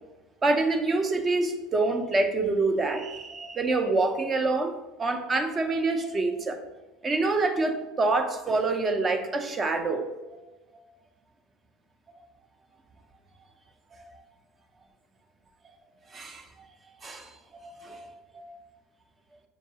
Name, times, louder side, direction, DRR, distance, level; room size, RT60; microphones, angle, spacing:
voice 1, 0.4-6.6 7.0-10.1 16.1-16.4 17.0-17.3 17.6-18.1 18.3-18.6, right 3 dB, 20° right, 6 dB, 0.4 m, -26 dB
6.6 x 2.3 x 2.7 m, 1.1 s
cardioid pair, 165°, 0 cm